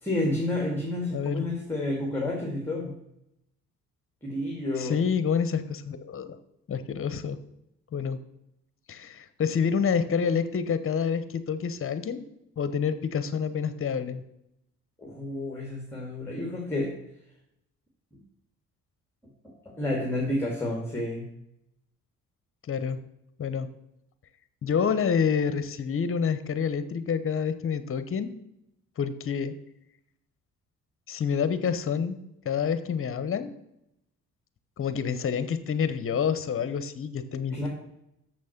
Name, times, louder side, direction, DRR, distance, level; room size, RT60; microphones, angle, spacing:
voice 1, 0.0-2.9 4.2-5.0 15.0-16.9 18.1-18.2 19.7-21.2 37.5-37.7, left 1 dB, 10° left, -1 dB, 2.1 m, -30 dB
voice 2, 1.1-1.4 4.8-6.4 6.7-7.4 7.9-8.2 8.9-12.2 12.6-14.2 22.7-23.0 23.4-23.7 24.6-28.3 29.0-29.5 31.1-32.2 32.4-33.5 34.8-37.7, left 6 dB, 45° left, 12 dB, 0.9 m, -28 dB
7.0 x 6.2 x 5.9 m, 0.82 s
cardioid pair, 90°, 30 cm